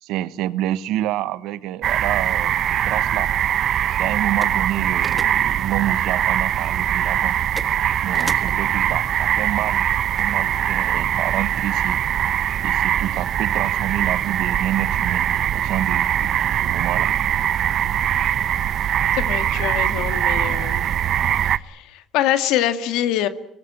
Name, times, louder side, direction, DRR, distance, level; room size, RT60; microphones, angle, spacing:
voice 1, 0.0-3.3 4.0-7.3 8.0-9.8 10.2-12.0 12.6-15.3 15.5-17.1, right 13 dB, 80° right, 15 dB, 1.2 m, -28 dB
sound 1, 1.8-21.6, right 10 dB, 55° right, 0.8 m, -22 dB
sound 2, 2.7-10.7, equal, ahead, 1.7 m, -43 dB
voice 2, 19.1-20.9 21.4-23.3, left 12 dB, 85° left, 10 dB, 1.9 m, -24 dB
24.5 x 19.5 x 8.8 m, 0.84 s
cardioid pair, 125°, 0 cm